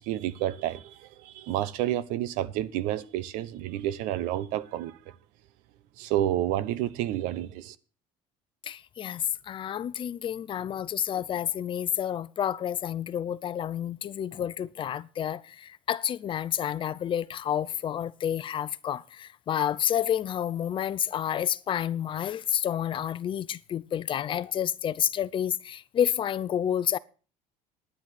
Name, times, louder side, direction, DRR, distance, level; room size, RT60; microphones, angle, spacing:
voice 1, 0.0-5.1 6.0-7.8, right 13 dB, 80° right, 0.9 m, -30 dB
voice 2, 8.6-27.0, left 9 dB, 40° left, 0.6 m, -29 dB
10.0 x 9.7 x 5.9 m
cardioid pair, 115°, 13 cm